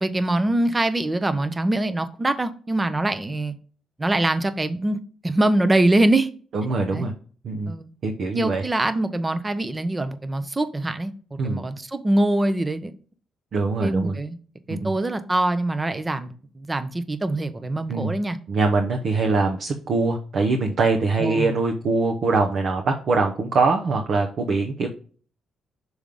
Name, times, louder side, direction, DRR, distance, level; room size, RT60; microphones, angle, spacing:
voice 1, 0.0-3.5 4.0-6.3 6.9-7.1 7.7-7.9 8.3-12.9 13.8-14.4 14.7-18.4 21.2-21.5, right 1 dB, 20° right, 0.7 m, -23 dB
voice 2, 6.5-7.1 7.4-7.7 8.0-8.7 11.4-11.7 13.5-14.2 14.7-15.0 17.9-18.1 18.5-24.9, right 3 dB, 55° right, 0.9 m, -23 dB
6.2 x 3.5 x 5.3 m
cardioid pair, 90°, 0 cm